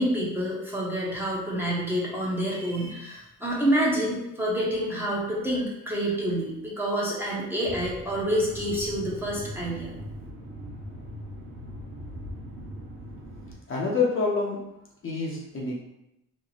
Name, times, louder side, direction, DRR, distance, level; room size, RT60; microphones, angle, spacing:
voice 1, 0.0-9.9, equal, 5° right, -6 dB, 0.7 m, -28 dB
sound 1, 7.6-13.5, equal, 45° right, 1.1 m, -40 dB
voice 2, 13.7-14.6 15.0-15.8, left 4 dB, 35° left, -3 dB, 0.6 m, -27 dB
3.0 x 2.0 x 3.9 m, 0.87 s
cardioid pair, 140°, 35 cm